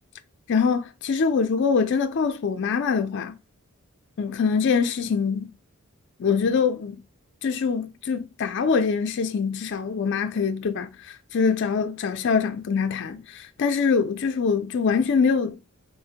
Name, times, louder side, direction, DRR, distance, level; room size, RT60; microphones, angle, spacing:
voice 1, 0.5-3.4 4.2-5.5 6.2-7.0 7.4-15.6, left 5 dB, 55° left, 0.4 m, -24 dB
4.1 x 2.1 x 2.7 m
head